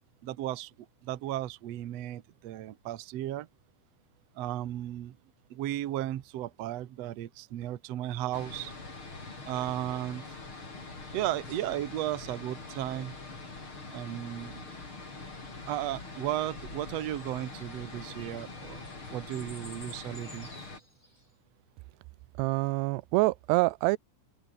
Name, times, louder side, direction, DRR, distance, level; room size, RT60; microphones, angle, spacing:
voice 1, 0.2-0.7 1.0-3.5 4.4-5.2 5.5-8.7 9.5-10.2 11.1-13.1 13.9-14.7 15.7-18.8 19.1-20.5, right 13 dB, 65° right, 1.6 m, -35 dB
sound 1, 8.3-20.8, left 3 dB, 30° left, 6.2 m, -44 dB
sound 2, 15.9-21.3, left 1 dB, 10° left, 6.7 m, -54 dB
voice 2, 22.4-24.0, right 23 dB, 90° right, 2.7 m, -26 dB
open air
omnidirectional pair, 4.6 m